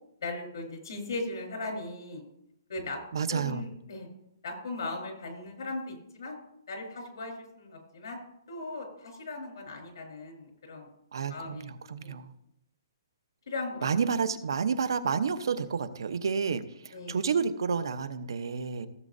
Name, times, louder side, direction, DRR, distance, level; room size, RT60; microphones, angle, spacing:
voice 1, 0.2-2.2 2.7-3.0 3.3-4.1 4.4-6.4 6.7-8.2 8.5-10.9 11.3-11.7 12.0-12.2 13.5-13.9 16.9-17.2, left 2 dB, 65° left, 2 dB, 4.1 m, -38 dB
voice 2, 3.1-3.6 11.1-12.3 13.8-18.9, right 6 dB, 75° right, 12 dB, 0.9 m, -30 dB
17.0 x 7.5 x 2.7 m, 0.77 s
hypercardioid pair, 160°, 2 cm